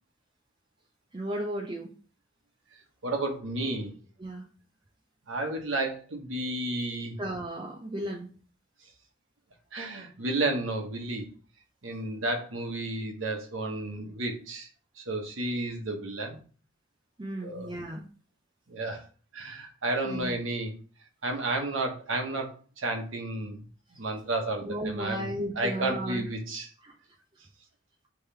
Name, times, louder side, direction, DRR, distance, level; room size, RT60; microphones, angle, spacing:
voice 1, 1.1-1.9 4.2-4.5 7.2-8.3 17.2-18.0 20.0-20.4 24.6-26.2 26.8-27.0, right 1 dB, 25° right, 1 dB, 0.4 m, -34 dB
voice 2, 3.0-3.9 5.3-7.2 9.7-11.2 11.8-14.7 15.0-16.4 17.4-17.7 18.7-19.0 19.3-20.7 21.2-23.6 23.9-25.3 25.6-26.7, right 2 dB, 75° right, 3 dB, 1.0 m, -32 dB
3.6 x 3.1 x 4.5 m, 0.40 s
head